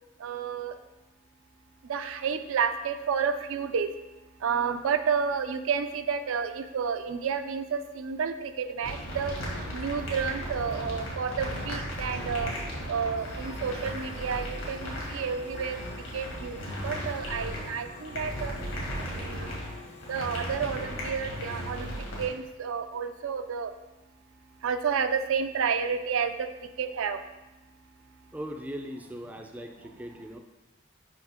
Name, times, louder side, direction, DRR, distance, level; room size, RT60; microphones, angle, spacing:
voice 1, 0.2-0.8 1.9-3.9 4.4-9.4 9.7-12.5 12.9-15.8 16.1-18.5 19.1-19.6 20.1-21.9 22.2-23.7 24.6-26.5 26.8-27.2, right 6 dB, 70° right, 9 dB, 0.4 m, -30 dB
sound 1, 8.8-22.2, equal, 75° left, 1.9 m, -36 dB
sound 2, 13.2-22.3, left 3 dB, 55° left, 1.0 m, -49 dB
voice 2, 28.3-30.4, equal, 5° right, 4 dB, 0.4 m, -39 dB
6.0 x 5.4 x 3.6 m, 1.0 s
head